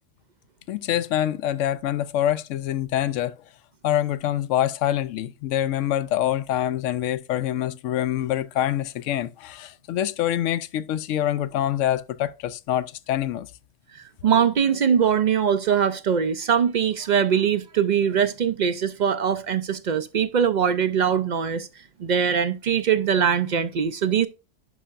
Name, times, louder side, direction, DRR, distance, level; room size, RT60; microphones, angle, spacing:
voice 1, 0.7-3.3 3.8-13.5, left 12 dB, 80° left, 0.9 m, -25 dB
voice 2, 13.9-21.7 22.0-24.3, right 7 dB, 60° right, 0.4 m, -22 dB
11.0 x 5.5 x 2.5 m
omnidirectional pair, 1.3 m